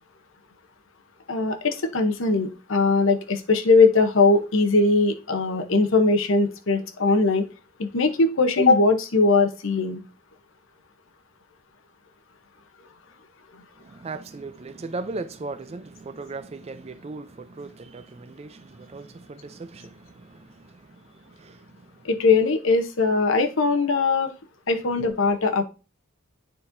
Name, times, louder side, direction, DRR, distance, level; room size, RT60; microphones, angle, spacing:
voice 1, 1.3-7.5 7.8-10.0 22.0-24.3 24.7-25.6, left 3 dB, 65° left, 0.8 m, -20 dB
voice 2, 13.8-22.1, right 3 dB, 30° right, 0.4 m, -38 dB
9.4 x 4.2 x 2.6 m
head